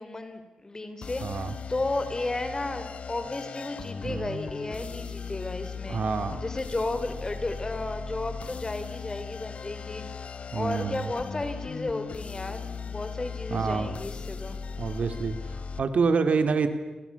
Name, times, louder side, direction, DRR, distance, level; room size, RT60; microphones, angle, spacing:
voice 1, 0.0-6.0 6.4-14.6, left 2 dB, 25° left, 9 dB, 3.7 m, -33 dB
sound 1, 1.0-15.8, left 5 dB, 60° left, 1.3 m, -38 dB
voice 2, 1.2-1.6 4.0-4.4 5.9-6.4 10.5-11.1 13.5-14.0 14.8-16.7, right 5 dB, 65° right, 9 dB, 2.4 m, -27 dB
29.0 x 25.5 x 7.0 m, 1.2 s
wide cardioid pair, 100°, 2 cm